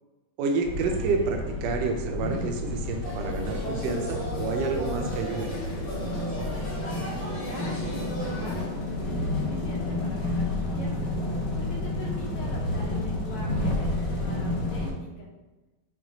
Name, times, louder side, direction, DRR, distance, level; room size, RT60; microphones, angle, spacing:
voice 1, 0.4-5.5, right 4 dB, 75° right, 2 dB, 1.0 m, -29 dB
sound 1, 0.6-14.9, left 2 dB, 70° left, 1.6 m, -30 dB
sound 2, 3.0-8.6, equal, 50° left, 2.0 m, -36 dB
voice 2, 6.5-11.1 11.5-15.3, equal, 90° left, -2 dB, 1.7 m, -43 dB
5.8 x 2.3 x 2.8 m, 1.1 s
omnidirectional pair, 2.3 m